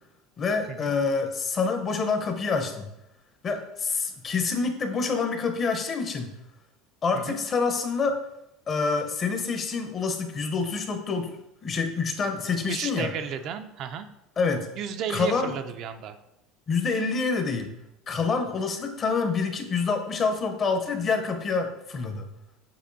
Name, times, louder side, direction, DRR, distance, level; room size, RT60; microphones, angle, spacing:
voice 1, 0.4-2.9 3.4-6.3 7.0-8.2 8.7-13.1 14.4-14.7 15.1-15.5 16.7-17.7 18.1-22.3, left 4 dB, 35° left, 6 dB, 0.6 m, -27 dB
voice 2, 12.7-14.1 14.8-16.2, right 8 dB, 55° right, 9 dB, 0.3 m, -33 dB
6.7 x 2.6 x 2.6 m, 0.86 s
supercardioid pair, 100°, 0 cm